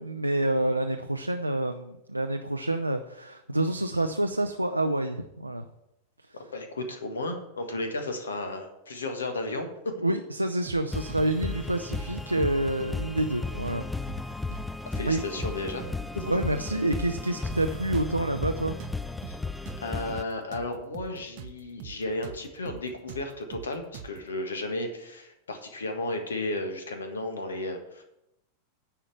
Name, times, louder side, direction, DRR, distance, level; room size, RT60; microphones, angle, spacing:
voice 1, 0.1-5.6 10.0-13.8 15.1-15.2 16.3-18.8, right 1 dB, 85° right, 5 dB, 0.5 m, -28 dB
voice 2, 6.3-9.9 14.8-15.9 16.1-16.2 19.3-19.4 19.8-28.0, left 2 dB, 70° left, 6 dB, 1.5 m, -34 dB
sound 1, 10.7-11.2 11.5-11.7 11.9-13.0 13.2-13.4 13.7-14.7 14.9-15.1 15.4-16.4 16.7-16.8 17.1-18.5 18.8-21.5 21.8-22.0 22.2-24.3, right 9 dB, 50° right, 0.8 m, -42 dB
sound 2, 10.9-20.2, left 3 dB, 10° left, 0.4 m, -35 dB
10.0 x 5.0 x 7.3 m, 0.85 s
figure-of-eight pair, 90°, 0 cm